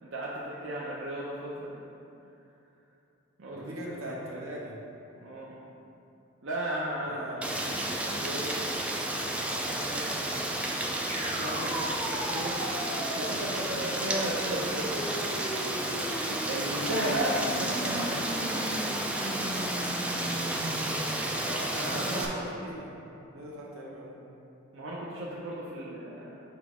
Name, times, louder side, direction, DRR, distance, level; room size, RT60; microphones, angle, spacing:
voice 1, 0.0-1.9 3.4-4.4 5.2-5.6 6.4-8.9 9.5-10.8 11.4-12.6 13.0-15.2 16.4-18.8 21.1-22.7 24.7-26.4, right 1 dB, 65° right, -6 dB, 0.6 m, -36 dB
voice 2, 3.5-4.8 7.1-7.4 20.1-20.6 21.8-23.0 23.3-24.2, right 1 dB, 85° right, -4 dB, 1.1 m, -41 dB
Rain, 7.4-22.2, right 1 dB, 5° right, 0.3 m, -32 dB
sound 1, 11.1-21.0, right 1 dB, 35° right, 0.9 m, -38 dB
5.9 x 4.6 x 3.6 m, 2.8 s
head